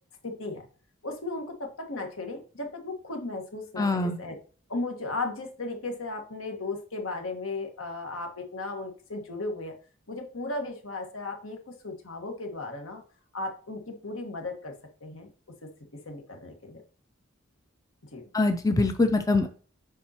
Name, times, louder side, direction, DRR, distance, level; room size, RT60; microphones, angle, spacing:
voice 1, 0.2-0.7 1.0-4.4 4.7-9.7 10.1-13.0 13.3-14.7 15.0-15.3 16.0-16.8 18.1-18.2, left 2 dB, 80° left, 3 dB, 1.6 m, -35 dB
voice 2, 3.8-4.2 18.3-19.5, left 3 dB, 15° left, 7 dB, 0.5 m, -23 dB
7.4 x 5.5 x 2.9 m, 0.41 s
head